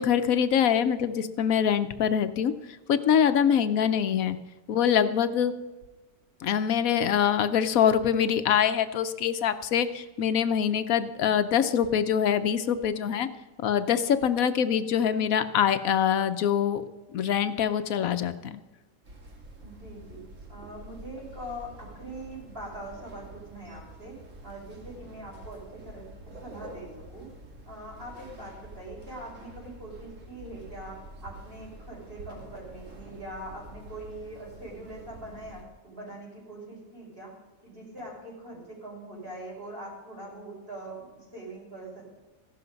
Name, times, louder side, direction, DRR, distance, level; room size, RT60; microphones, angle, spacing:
voice 1, 0.0-2.5 2.9-4.4 4.7-5.5 6.4-13.3 13.6-16.8 17.1-18.6, left 8 dB, 90° left, 11 dB, 1.2 m, -24 dB
sound 1, 19.0-35.6, right 2 dB, 65° right, 2.2 m, -47 dB
voice 2, 19.6-20.2 20.5-27.3 27.7-37.3 37.6-42.1, right 1 dB, 45° right, -3 dB, 5.9 m, -42 dB
15.5 x 11.5 x 5.3 m, 1.1 s
omnidirectional pair, 1.4 m